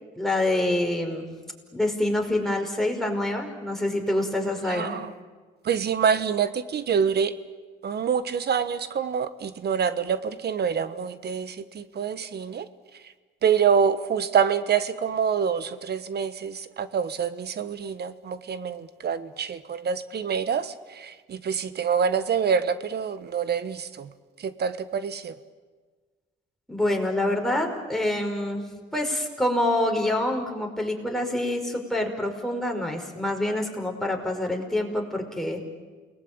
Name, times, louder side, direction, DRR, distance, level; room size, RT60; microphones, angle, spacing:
voice 1, 0.2-1.3 1.7-5.0 26.7-28.6 28.9-35.6, left 1 dB, ahead, 2 dB, 5.2 m, -26 dB
voice 2, 4.7-5.1 5.6-7.3 7.8-12.7 13.4-24.1 24.4-25.3, right 7 dB, 55° right, 13 dB, 1.3 m, -26 dB
29.0 x 20.0 x 8.8 m, 1.4 s
cardioid pair, 90°, 20 cm